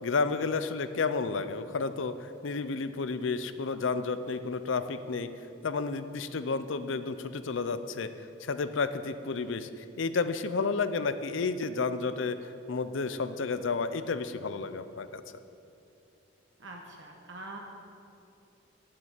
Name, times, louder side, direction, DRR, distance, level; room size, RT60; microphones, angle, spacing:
voice 1, 0.0-5.3 5.6-8.1 8.4-9.7 10.0-15.2, left 4 dB, 75° left, 11 dB, 0.6 m, -31 dB
voice 2, 16.6-17.6, right 2 dB, 70° right, 0 dB, 1.2 m, -44 dB
8.7 x 7.5 x 8.2 m, 2.7 s
head